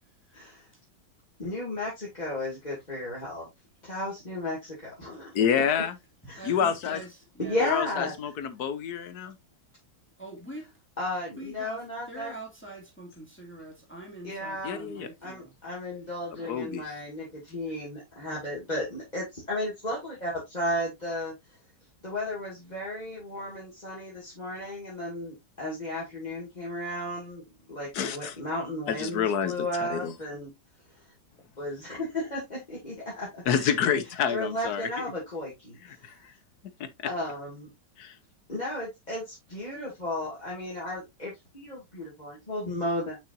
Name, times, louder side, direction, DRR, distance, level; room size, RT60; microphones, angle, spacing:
voice 1, 0.3-0.7 1.4-3.5 3.8-5.6 6.3-6.6 7.4-8.1 11.0-12.4 14.2-14.8 15.2-21.3 22.0-30.5 31.6-33.7 34.3-36.2 37.0-37.7 38.5-43.2, left 1 dB, 25° left, 2.3 m, -34 dB
voice 2, 5.3-6.0 6.4-7.0 7.6-9.4 14.6-15.1 16.5-16.8 27.9-28.4 28.9-30.1 33.5-34.9 36.0-36.1 36.8-36.9 38.0-38.1, left 8 dB, 65° left, 1.3 m, -28 dB
voice 3, 6.3-7.1 7.3-7.7 8.0-8.1 10.2-10.7 11.4-11.8 12.1-15.5 16.4-16.5, right 2 dB, 5° left, 2.1 m, -43 dB
6.7 x 5.7 x 2.6 m
omnidirectional pair, 1.9 m